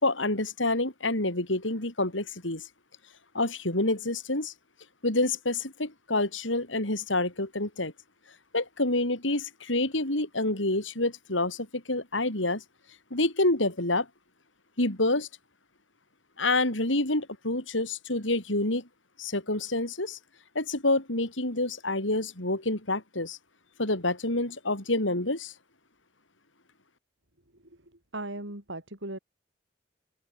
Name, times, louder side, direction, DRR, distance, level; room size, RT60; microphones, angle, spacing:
voice 1, 0.0-2.6 3.3-4.5 5.0-7.9 8.5-12.6 13.1-14.1 14.8-15.3 16.4-18.8 19.2-20.2 20.5-23.4 23.8-25.5, left 2 dB, 85° left, 5.8 m, -28 dB
voice 2, 27.5-29.2, right 2 dB, 75° right, 6.3 m, -39 dB
open air
head